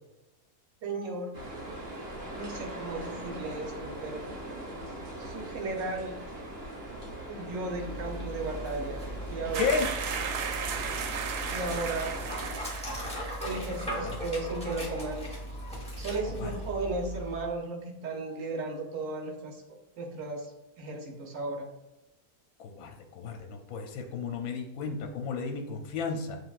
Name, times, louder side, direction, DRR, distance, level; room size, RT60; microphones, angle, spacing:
voice 1, 0.8-1.3 2.4-4.2 5.2-6.2 7.3-9.0 9.3-9.8 11.5-12.2 13.4-15.3 16.0-19.6 20.0-20.5 20.8-21.7, right 3 dB, 60° right, 1 dB, 1.1 m, -35 dB
sound 1, 1.3-12.6, right 1 dB, 40° right, 1.3 m, -41 dB
Dog, 7.6-17.5, equal, 5° left, 0.6 m, -38 dB
sound 2, 9.5-13.5 13.7-14.0, right 6 dB, 85° right, 1.1 m, -35 dB
voice 2, 9.6-9.9 13.9-14.1 16.3-16.6 22.6-26.4, left 5 dB, 70° left, 3 dB, 1.0 m, -33 dB
7.5 x 2.7 x 2.4 m, 0.96 s
omnidirectional pair, 1.7 m